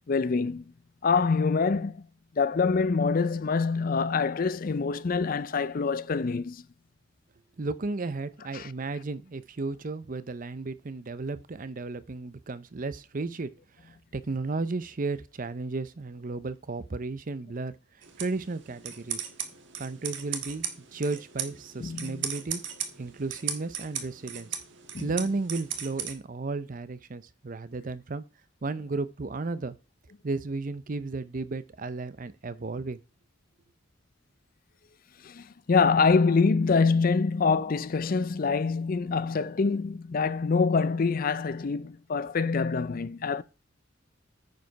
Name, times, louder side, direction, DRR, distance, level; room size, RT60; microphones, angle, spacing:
voice 1, 0.1-0.7 1.0-2.0 2.4-6.6 8.5-8.7 21.8-22.3 24.9-25.1 35.2-43.4, left 4 dB, 45° left, 0.5 m, -25 dB
voice 2, 7.6-13.5 13.8-17.8 18.2-19.3 19.8-22.6 23.0-24.5 25.0-28.2 28.6-29.8 30.2-33.0, right 3 dB, 45° right, 0.6 m, -34 dB
sound 1, 18.0-26.1, right 8 dB, 65° right, 1.4 m, -37 dB
9.3 x 5.0 x 5.8 m
head